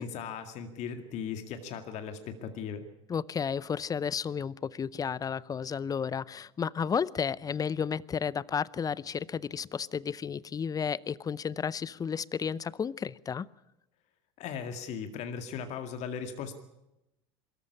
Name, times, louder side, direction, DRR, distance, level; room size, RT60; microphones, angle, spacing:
voice 1, 0.0-2.8 14.4-16.5, left 7 dB, 55° left, 7 dB, 2.1 m, -38 dB
voice 2, 3.1-13.5, left 7 dB, 25° left, 22 dB, 0.7 m, -32 dB
22.5 x 14.0 x 9.9 m, 0.94 s
hypercardioid pair, 80°, 14 cm